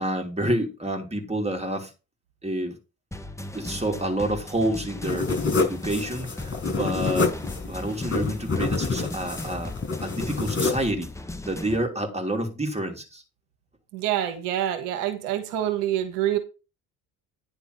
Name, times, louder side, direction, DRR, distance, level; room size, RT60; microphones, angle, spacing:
voice 1, 0.0-1.9 2.4-2.8 3.5-7.3 7.7-9.7 10.0-11.1 11.4-13.2, right 1 dB, 15° right, 4 dB, 2.7 m, -28 dB
sound 1, 3.1-11.8, left 2 dB, 5° left, 1.0 m, -37 dB
sound 2, 5.0-10.9, left 3 dB, 25° left, 5.5 m, -27 dB
voice 2, 13.9-16.4, right 11 dB, 80° right, 8 dB, 1.4 m, -26 dB
9.9 x 3.5 x 6.5 m, 0.30 s
hypercardioid pair, 60°, 45 cm